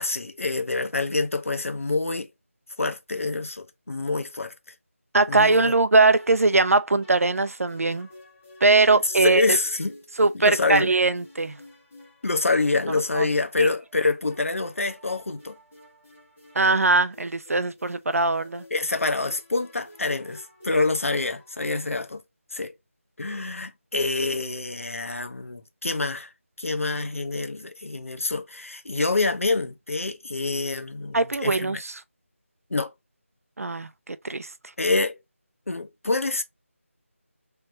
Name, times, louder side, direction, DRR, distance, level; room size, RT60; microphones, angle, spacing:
voice 1, 0.0-2.3 2.8-4.5 5.3-5.7 9.0-9.9 10.3-10.9 12.2-15.6 18.7-22.2 22.5-22.7 23.2-26.3 26.6-31.8 32.7-32.9 34.8-35.2 35.7-36.4, left 3 dB, 70° left, 0.8 m, -26 dB
voice 2, 5.1-8.1 8.6-9.5 10.2-11.6 13.1-13.3 13.6-13.7 16.6-18.6 31.1-31.9 33.6-34.5, right 3 dB, 85° right, 0.5 m, -21 dB
sound 1, 6.1-22.1, left 1 dB, 5° left, 0.6 m, -50 dB
3.3 x 3.1 x 2.7 m
figure-of-eight pair, 180°, 8 cm